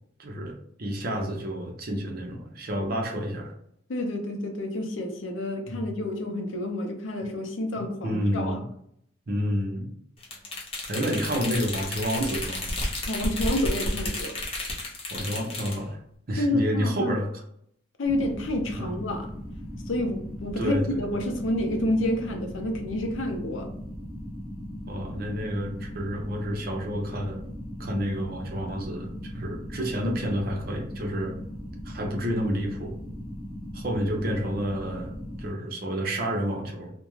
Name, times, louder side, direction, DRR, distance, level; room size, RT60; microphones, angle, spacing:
voice 1, 0.2-0.5 0.8-3.5 5.7-5.9 7.8-8.7 9.3-9.9 10.9-12.6 15.1-16.0 16.3-17.4 18.8-18.9 20.6-21.1 24.9-27.4 27.8-31.3 31.8-33.0 33.7-35.1 35.4-36.9, equal, 50° right, 1 dB, 0.6 m, -29 dB
voice 2, 3.9-8.6 13.1-14.3 16.4-17.1 18.0-19.3 19.9-23.7, left 1 dB, 85° left, 4 dB, 0.5 m, -29 dB
sound 1, 10.2-15.8, left 1 dB, 30° left, 0.6 m, -31 dB
sound 2, 18.0-35.5, equal, ahead, 0.9 m, -38 dB
2.4 x 2.1 x 3.0 m, 0.70 s
head